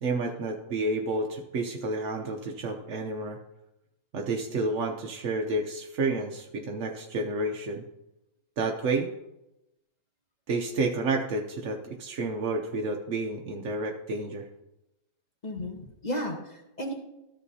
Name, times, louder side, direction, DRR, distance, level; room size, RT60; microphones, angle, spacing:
voice 1, 0.0-3.4 4.1-7.8 8.6-9.1 10.5-14.5, right 2 dB, 60° right, 1 dB, 0.8 m, -30 dB
voice 2, 15.4-16.9, equal, 30° left, 1 dB, 0.9 m, -34 dB
13.5 x 7.6 x 2.7 m, 0.91 s
omnidirectional pair, 2.1 m